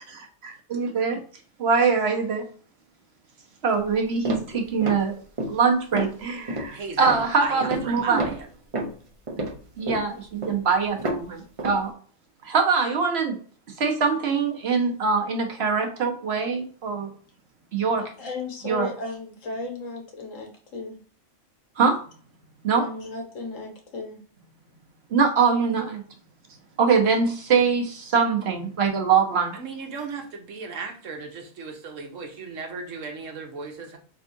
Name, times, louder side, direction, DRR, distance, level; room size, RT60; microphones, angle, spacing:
voice 1, 0.2-1.2 1.6-2.4 3.6-5.1 5.5-8.2 9.8-11.9 12.4-13.3 13.8-17.1 17.7-18.0 18.6-18.9 21.8-22.0 22.6-22.9 25.1-26.0 26.8-29.5, right 5 dB, 60° right, 2 dB, 1.2 m, -23 dB
sound 1, 3.8-3.9 4.2-5.0 5.4-5.6 5.9-6.2 6.5-6.8 7.1-7.3 7.6-7.9 8.2-11.3 11.6-11.8, right 1 dB, 30° right, 0.7 m, -30 dB
voice 2, 6.6-8.5 29.5-34.0, right 5 dB, 85° right, 3 dB, 1.3 m, -36 dB
voice 3, 17.9-20.9 22.8-24.2, left 2 dB, 80° left, 2 dB, 1.6 m, -35 dB
4.7 x 3.6 x 2.6 m, 0.43 s
omnidirectional pair, 1.3 m